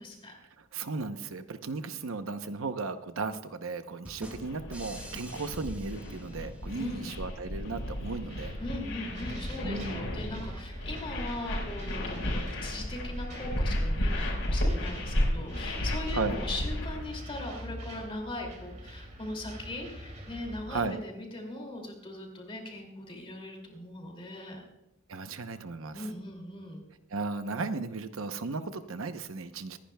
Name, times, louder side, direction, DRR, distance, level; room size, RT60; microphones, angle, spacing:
voice 1, 0.0-0.4 6.7-7.1 8.6-24.6 25.9-26.8, left 1 dB, 25° left, 1 dB, 2.5 m, -40 dB
voice 2, 0.6-8.5 9.6-10.0 16.1-16.4 20.7-21.0 25.1-26.1 27.1-29.8, right 3 dB, 70° right, 10 dB, 0.8 m, -35 dB
sound 1, 4.0-6.9, right 1 dB, 5° right, 1.4 m, -48 dB
sound 2, 4.2-17.1, left 1 dB, 75° left, 4.5 m, -33 dB
sound 3, 8.3-20.9, equal, 35° right, 2.6 m, -44 dB
25.5 x 10.5 x 2.3 m, 0.92 s
head